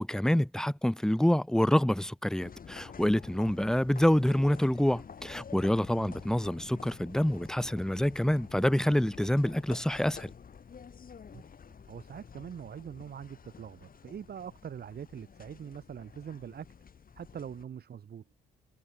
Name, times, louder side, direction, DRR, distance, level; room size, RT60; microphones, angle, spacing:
voice 1, 0.0-10.3, left 1 dB, 5° left, 1.2 m, -27 dB
sound 1, 2.4-17.6, left 6 dB, 55° left, 5.0 m, -49 dB
voice 2, 11.9-16.7 17.2-18.2, right 8 dB, 65° right, 3.2 m, -43 dB
cardioid pair, 70°, 18 cm